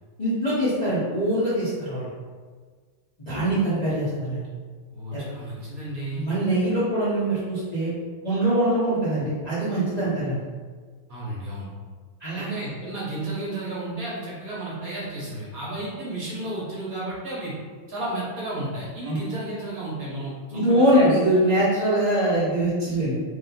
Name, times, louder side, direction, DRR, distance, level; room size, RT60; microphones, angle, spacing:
voice 1, 0.2-2.1 3.3-4.5 5.1-5.2 6.1-7.9 8.2-10.4 12.2-12.6 19.0-19.2 20.5-23.2, right 1 dB, 50° left, -10 dB, 0.5 m, -23 dB
voice 2, 4.9-6.3 11.1-11.7 12.3-17.5 17.9-21.0, right 1 dB, 50° right, -7 dB, 1.4 m, -33 dB
3.3 x 2.8 x 4.0 m, 1.5 s
omnidirectional pair, 2.2 m